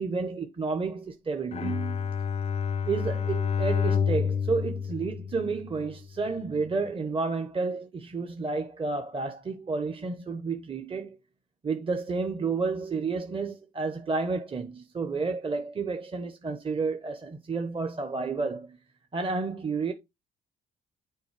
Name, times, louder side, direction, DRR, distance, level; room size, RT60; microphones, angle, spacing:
voice 1, 0.0-2.1 2.9-11.2 11.6-18.8 19.1-19.9, right 4 dB, 25° right, 1.0 m, -31 dB
Bowed string instrument, 1.5-5.9, left 6 dB, 30° left, 0.5 m, -29 dB
6.9 x 4.4 x 3.3 m
cardioid pair, 90°, 20 cm